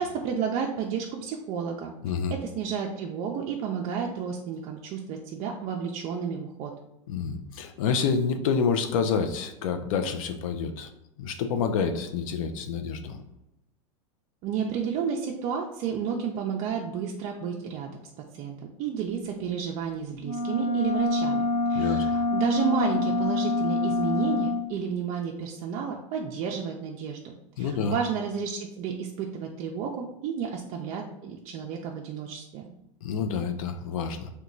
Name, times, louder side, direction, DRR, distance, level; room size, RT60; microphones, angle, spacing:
voice 1, 0.0-1.9 2.3-6.7 14.4-17.9 18.3-27.2 27.6-32.7, right 6 dB, 40° right, 0 dB, 0.4 m, -31 dB
voice 2, 2.0-2.3 7.1-10.9 11.2-13.2 21.7-22.1 27.6-28.0 33.0-34.3, left 6 dB, 80° left, 6 dB, 0.4 m, -28 dB
sound 1, 20.2-24.6, left 2 dB, 10° left, 0.8 m, -26 dB
2.9 x 2.2 x 3.8 m, 0.85 s
supercardioid pair, 135°, 17 cm